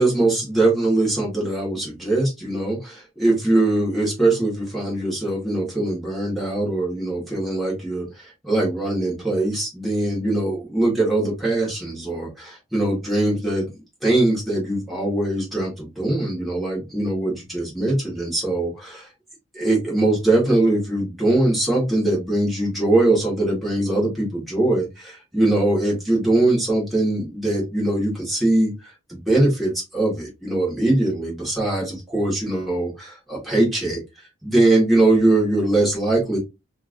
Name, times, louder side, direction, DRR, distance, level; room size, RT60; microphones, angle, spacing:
voice 1, 0.0-13.7 14.0-19.1 19.5-36.4, right 2 dB, ahead, -5 dB, 1.6 m, -22 dB
5.3 x 2.5 x 2.6 m, 0.24 s
head